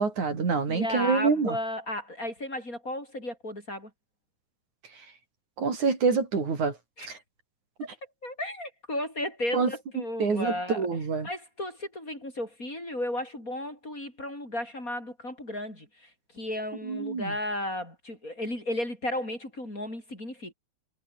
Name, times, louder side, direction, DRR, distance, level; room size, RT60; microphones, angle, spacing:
voice 1, 0.0-1.6 5.6-6.8 7.1-7.2 9.5-9.7 10.2-11.3 16.8-17.3, right 5 dB, 70° right, 6.0 m, -26 dB
voice 2, 0.7-3.9 7.0-7.1 7.8-7.9 8.2-10.9 11.2-20.5, left 1 dB, 25° left, 8.5 m, -34 dB
omnidirectional pair, 3.5 m